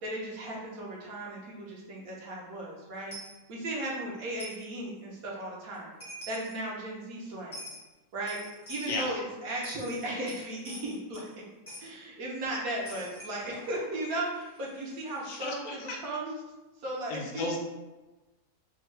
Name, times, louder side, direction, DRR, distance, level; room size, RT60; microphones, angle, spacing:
voice 1, 0.0-3.1 3.5-5.9 6.3-7.6 8.1-8.4 8.7-11.4 11.8-16.4 16.8-17.5, right 1 dB, 80° right, -3 dB, 1.2 m, -36 dB
Coin (dropping), 3.1-3.4 4.4-4.7 5.7-5.8 6.0-6.5 7.5-7.8 8.3-9.0 9.5-11.3 11.7-11.9 12.9-15.5, equal, 15° left, 0.6 m, -46 dB
voice 2, 8.9-9.2 15.2-16.0 17.1-17.6, left 3 dB, 75° left, 0 dB, 1.0 m, -35 dB
3.5 x 2.1 x 3.1 m, 1.1 s
omnidirectional pair, 1.5 m